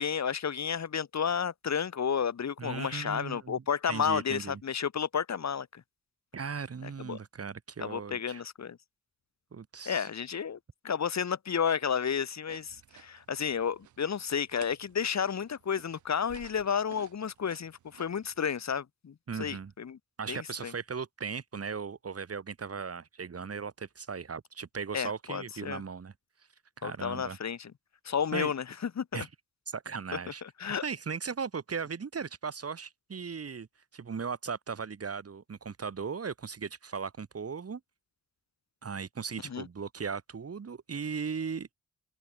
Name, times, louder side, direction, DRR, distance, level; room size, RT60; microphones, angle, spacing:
voice 1, 0.0-5.8 6.8-7.2 7.8-8.8 9.9-10.6 10.8-20.0 20.3-20.7 24.9-25.8 26.8-27.7 28.0-29.3 30.4-30.8 39.4-39.7, left 7 dB, 65° left, 2.5 m, -32 dB
voice 2, 2.6-3.6 3.9-4.6 6.3-8.4 9.5-10.1 19.3-19.7 20.2-26.1 26.8-27.4 28.3-28.5 29.1-29.3 29.7-30.4 30.8-33.7 33.9-37.8 38.8-41.7, right 5 dB, 55° right, 2.2 m, -37 dB
sound 1, 12.5-18.6, right 11 dB, 90° right, 2.8 m, -56 dB
open air
supercardioid pair, 40°, 29 cm